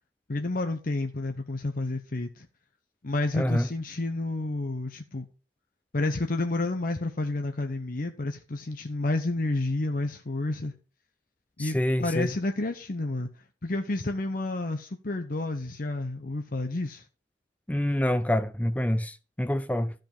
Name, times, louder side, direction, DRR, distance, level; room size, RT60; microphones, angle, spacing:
voice 1, 0.3-2.5 3.0-5.3 5.9-10.7 11.6-13.3 13.6-17.0, left 2 dB, 55° left, 0.8 m, -30 dB
voice 2, 3.3-3.7 11.6-12.3 17.7-19.9, left 1 dB, 10° left, 0.5 m, -26 dB
13.0 x 5.2 x 5.3 m
head